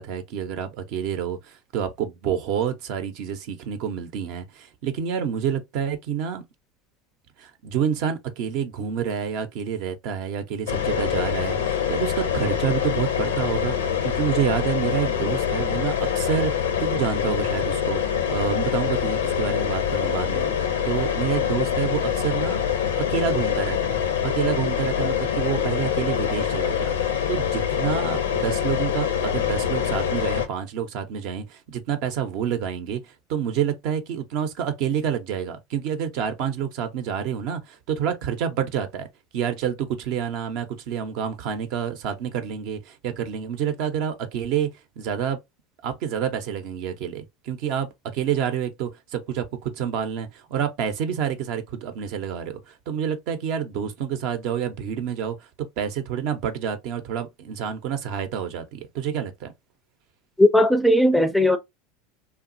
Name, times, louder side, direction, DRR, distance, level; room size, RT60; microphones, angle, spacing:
voice 1, 0.0-6.4 7.4-13.8 14.0-18.0 18.3-22.6 22.9-39.1 39.3-44.7 45.0-45.4 45.8-59.5, right 8 dB, 60° right, 0.6 m, -28 dB
sound 1, 10.7-30.5, left 8 dB, 85° left, 0.5 m, -25 dB
voice 2, 60.4-61.6, left 1 dB, ahead, 0.4 m, -17 dB
2.9 x 2.3 x 2.5 m
hypercardioid pair, 95°, 0 cm